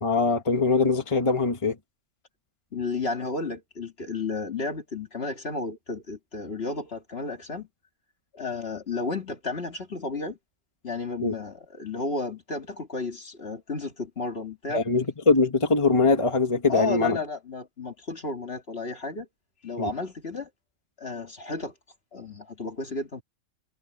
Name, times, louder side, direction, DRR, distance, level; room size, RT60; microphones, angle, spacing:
voice 1, 0.0-1.8 11.2-11.3 14.7-17.2 19.8-19.9, left 3 dB, 25° left, 1.8 m, -22 dB
voice 2, 2.7-7.7 8.3-10.4 10.8-14.8 16.7-19.3 19.6-20.5 21.0-21.7 22.1-23.2, left 3 dB, 50° left, 2.3 m, -32 dB
omnidirectional pair, 1.4 m